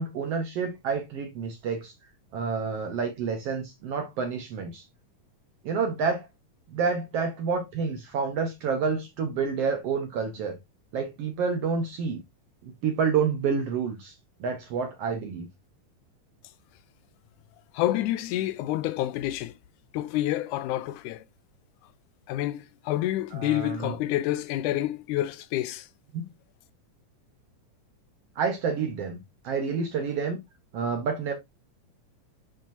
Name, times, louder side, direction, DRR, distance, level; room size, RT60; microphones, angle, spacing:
voice 1, 0.0-1.9 2.3-4.8 5.6-6.3 6.7-10.6 10.9-12.2 12.6-14.1 14.4-15.5 23.4-23.9 26.1-26.3 28.4-29.2 29.4-30.4 30.7-31.3, right 5 dB, 70° right, 1.5 m, -29 dB
voice 2, 17.7-19.6 19.9-21.2 22.3-25.9, left 14 dB, 80° left, 1.9 m, -28 dB
8.9 x 4.4 x 2.6 m
omnidirectional pair, 3.7 m